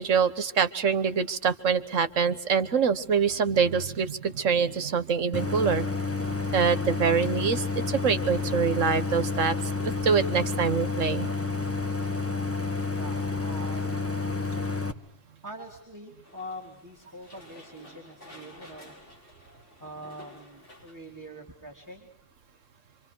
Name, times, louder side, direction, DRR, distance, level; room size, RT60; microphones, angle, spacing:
voice 1, 0.0-5.8 6.5-9.6 9.8-11.3, right 6 dB, 80° right, 12 dB, 1.7 m, -25 dB
Idling, 5.3-14.9, left 4 dB, 10° left, 1.2 m, -30 dB
voice 2, 12.9-14.3 15.4-19.0 19.8-22.1, equal, 15° right, -1 dB, 3.4 m, -44 dB
sound 1, 16.2-20.9, left 1 dB, 70° left, 5.9 m, -51 dB
27.5 x 26.0 x 6.2 m, 0.72 s
omnidirectional pair, 1.3 m